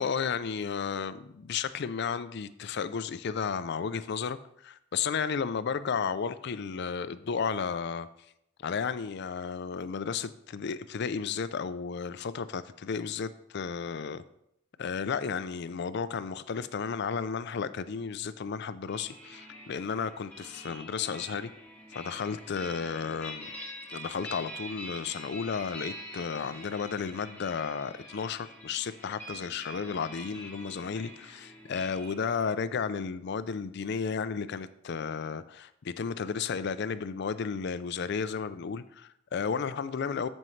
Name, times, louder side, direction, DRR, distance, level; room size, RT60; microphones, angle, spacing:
voice 1, 0.0-8.1 8.6-14.2 14.8-21.5 21.9-23.5 23.9-40.3, left 6 dB, 50° left, 14 dB, 0.4 m, -33 dB
sound 1, 18.9-32.1, equal, 5° left, 2.0 m, -45 dB
13.0 x 5.3 x 3.2 m, 0.77 s
head